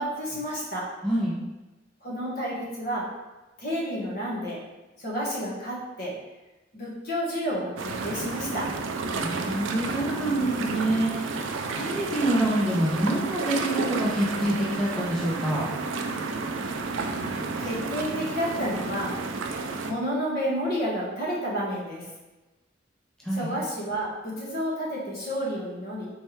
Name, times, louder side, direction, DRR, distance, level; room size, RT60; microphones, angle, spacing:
voice 1, 0.0-0.9 2.0-3.1 3.6-4.6 5.0-6.1 6.7-8.7 17.6-19.1 19.8-22.1 23.3-26.1, equal, 55° left, -5 dB, 1.3 m, -30 dB
voice 2, 1.0-1.4 9.2-15.7 23.2-23.5, right 1 dB, 5° left, -6 dB, 0.6 m, -26 dB
sound 1, 7.8-19.9, right 3 dB, 70° right, 0.4 m, -31 dB
4.4 x 3.2 x 3.1 m, 1.1 s
head